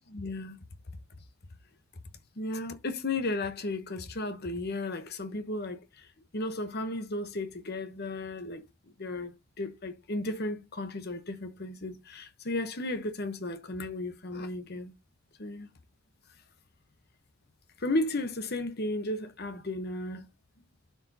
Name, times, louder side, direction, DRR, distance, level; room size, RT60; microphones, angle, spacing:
voice 1, 0.1-0.6 2.4-6.1 6.3-8.7 9.0-14.9 15.4-15.7 17.8-20.3, left 2 dB, 45° left, 1.0 m, -34 dB
11.5 x 4.8 x 2.8 m
head